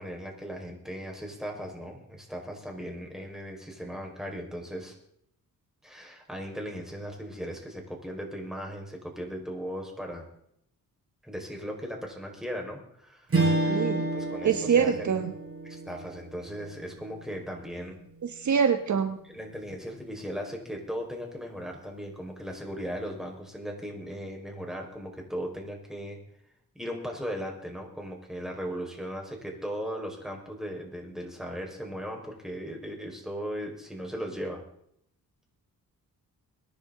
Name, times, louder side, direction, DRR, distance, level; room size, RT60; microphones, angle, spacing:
voice 1, 0.0-4.9 5.8-10.2 11.2-15.2 15.6-18.0 19.2-26.2 26.7-34.7, equal, ahead, 1 dB, 4.7 m, -37 dB
Strum, 13.3-17.9, right 2 dB, 40° right, 6.8 m, -30 dB
voice 2, 13.7-14.1 14.4-15.3 18.2-19.2, right 7 dB, 55° right, 8 dB, 1.1 m, -25 dB
23.0 x 10.5 x 3.8 m, 0.70 s
cardioid pair, 100°, 35 cm